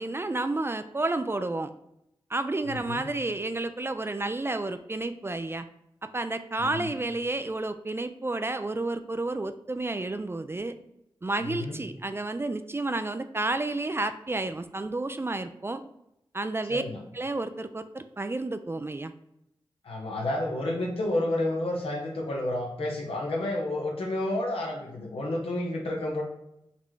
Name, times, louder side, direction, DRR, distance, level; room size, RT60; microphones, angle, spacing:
voice 1, 0.0-1.7 2.3-5.7 6.0-10.7 11.2-15.8 16.3-16.8 17.1-19.1, right 2 dB, 25° right, 10 dB, 0.3 m, -31 dB
voice 2, 2.7-3.0 6.6-6.9 11.4-11.7 16.7-17.0 19.8-26.2, left 1 dB, 80° left, -1 dB, 0.8 m, -30 dB
4.1 x 2.1 x 4.6 m, 0.81 s
cardioid pair, 45°, 10 cm